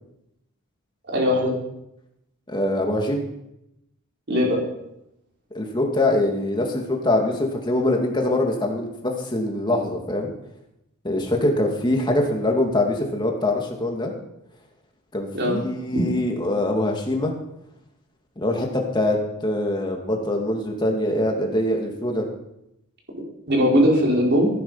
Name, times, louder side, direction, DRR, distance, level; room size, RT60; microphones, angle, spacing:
voice 1, 1.1-1.5 4.3-4.6 15.3-15.6 23.5-24.5, equal, 50° right, -2 dB, 4.9 m, -19 dB
voice 2, 2.5-3.2 5.5-10.3 11.0-14.1 15.1-17.3 18.4-22.3, left 1 dB, 20° left, 1 dB, 2.4 m, -23 dB
16.0 x 10.5 x 5.7 m, 0.83 s
head